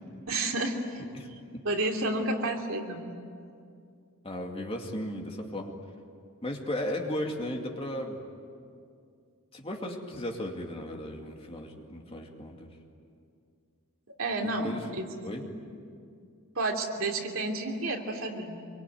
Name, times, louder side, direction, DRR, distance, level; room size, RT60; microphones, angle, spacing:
voice 1, 0.3-1.0 1.6-3.1 14.2-15.1 15.4-15.5 16.5-18.7, right 2 dB, 65° right, 2 dB, 2.9 m, -31 dB
voice 2, 4.2-5.8 6.4-8.2 9.5-12.7 14.4-14.8 15.2-15.5, left 1 dB, 25° left, 1 dB, 2.4 m, -35 dB
26.0 x 24.0 x 9.4 m, 2.3 s
head